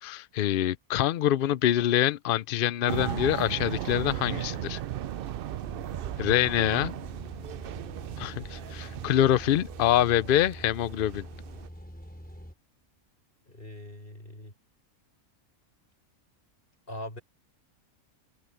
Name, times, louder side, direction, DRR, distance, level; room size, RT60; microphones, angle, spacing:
voice 1, 0.0-4.8 6.2-6.9 8.2-11.3, left 12 dB, 75° left, 0.5 m, -25 dB
sound 1, 2.9-11.7, right 11 dB, 80° right, 0.5 m, -36 dB
sound 2, 5.6-12.5, equal, 5° left, 4.0 m, -45 dB
voice 2, 13.4-14.5 16.9-17.2, left 1 dB, 35° left, 6.1 m, -41 dB
omnidirectional pair, 1.5 m